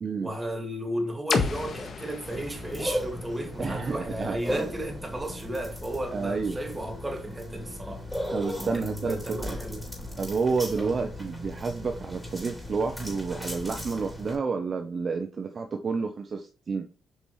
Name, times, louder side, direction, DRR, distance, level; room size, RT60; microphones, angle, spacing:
voice 1, 0.2-8.0 8.7-9.9 10.8-10.9, right 1 dB, 15° right, 2.2 m, -34 dB
sound 1, 1.3-5.2, left 5 dB, 50° left, 1.5 m, -33 dB
sound 2, 2.2-14.3, equal, ahead, 3.7 m, -37 dB
voice 2, 3.6-4.6 6.1-6.6 8.3-9.6 10.2-16.9, right 4 dB, 40° right, 0.8 m, -30 dB
8.3 x 5.3 x 3.2 m
cardioid pair, 90°, 0 cm